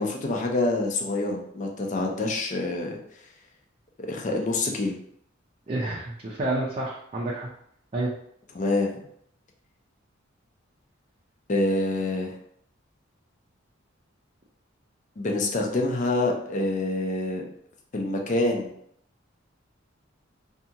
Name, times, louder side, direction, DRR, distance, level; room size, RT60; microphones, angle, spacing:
voice 1, 0.0-3.0 4.0-5.0 8.5-9.0 11.5-12.4 15.2-17.4 17.9-18.7, left 2 dB, 40° left, 1 dB, 0.5 m, -26 dB
voice 2, 5.7-7.5 7.9-8.1, right 2 dB, 30° right, -6 dB, 0.5 m, -29 dB
2.7 x 2.3 x 2.7 m, 0.69 s
head